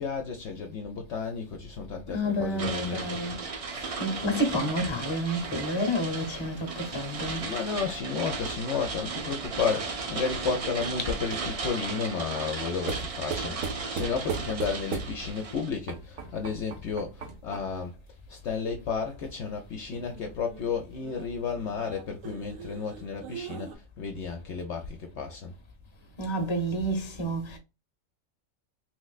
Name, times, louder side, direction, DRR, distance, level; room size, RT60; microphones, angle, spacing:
voice 1, 0.0-3.1 7.4-18.0 18.3-25.5, left 5 dB, 65° left, 0.8 m, -32 dB
voice 2, 2.1-3.3 3.7-7.6 9.7-9.9 26.2-27.6, equal, 25° left, 0.8 m, -30 dB
sound 1, 2.6-15.7, right 4 dB, 55° right, 0.4 m, -36 dB
sound 2, 8.2-11.6 12.9-15.4 15.9-17.8 19.9-23.8, right 5 dB, 75° right, 1.1 m, -39 dB
3.2 x 3.2 x 2.3 m
omnidirectional pair, 1.4 m